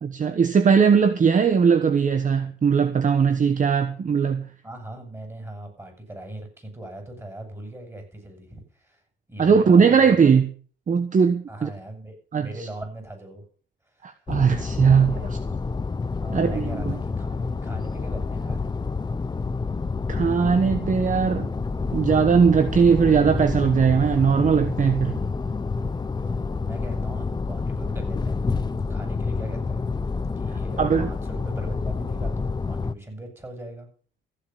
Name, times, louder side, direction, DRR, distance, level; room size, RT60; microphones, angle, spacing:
voice 1, 0.0-4.4 9.4-10.5 10.9-11.7 12.3-12.7 14.0-15.1 16.3-17.0 20.1-21.5 21.9-25.2 30.8-31.1, right 6 dB, 40° right, 1.2 m, -19 dB
voice 2, 4.6-9.0 9.3-10.3 11.5-13.4 13.8-14.1 15.0-15.4 16.2-18.7 26.3-28.5 28.9-29.9 30.4-33.9, right 1 dB, 15° right, 7.1 m, -40 dB
sound 1, 14.3-32.9, left 4 dB, 20° left, 0.7 m, -28 dB
15.0 x 7.7 x 7.3 m
cardioid pair, 90°, 20 cm